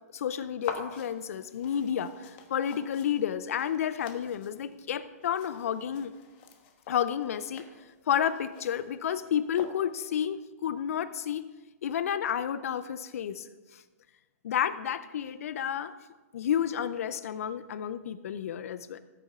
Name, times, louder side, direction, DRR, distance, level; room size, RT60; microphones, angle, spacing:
voice 1, 0.1-6.1 6.9-7.6 8.1-11.5 11.8-13.5 13.7-13.8 14.4-15.9 16.3-19.0, left 9 dB, 65° left, 13 dB, 0.5 m, -31 dB
sound 1, 0.6-10.2, left 6 dB, 40° left, 1.2 m, -47 dB
13.5 x 8.5 x 3.6 m, 1.2 s
hypercardioid pair, 135°, 8 cm